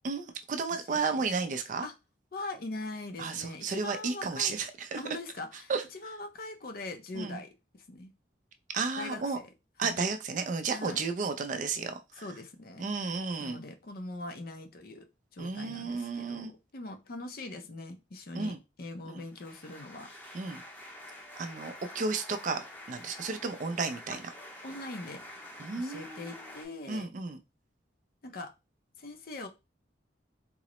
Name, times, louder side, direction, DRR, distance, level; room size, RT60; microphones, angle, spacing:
voice 1, 0.0-1.9 3.2-5.0 5.7-5.8 7.1-7.4 8.7-9.4 9.8-12.0 12.8-13.6 15.4-16.5 18.3-18.6 19.1-19.2 20.3-20.6 21.4-24.2 25.6-26.5 26.9-27.4, right 4 dB, 40° right, 8 dB, 0.4 m, -33 dB
voice 2, 0.7-1.2 1.8-1.9 2.3-4.6 4.9-5.7 6.0-7.5 7.7-8.1 9.0-9.5 9.8-10.0 10.7-11.0 12.2-12.9 13.4-15.1 15.3-20.1 24.6-25.2 25.8-27.1 28.2-28.5 29.0-29.5, left 2 dB, 50° left, 6 dB, 0.5 m, -42 dB
sound 1, 19.2-26.7, left 1 dB, 10° left, 0.6 m, -48 dB
3.7 x 2.0 x 2.9 m, 0.25 s
head